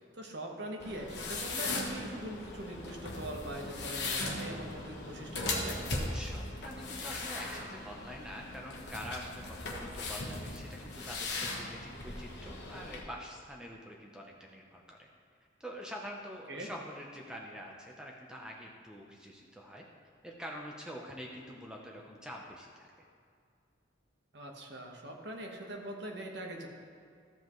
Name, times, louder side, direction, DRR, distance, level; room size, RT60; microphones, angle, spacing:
voice 1, 0.1-5.8 16.5-16.7 24.3-26.7, right 1 dB, 65° right, 1 dB, 1.2 m, -42 dB
sound 1, 0.8-13.0, left 2 dB, 60° left, 1.3 m, -38 dB
voice 2, 6.1-15.1 15.6-19.8 20.2-22.9, equal, 5° right, -1 dB, 0.7 m, -46 dB
13.5 x 7.8 x 3.1 m, 2.3 s
head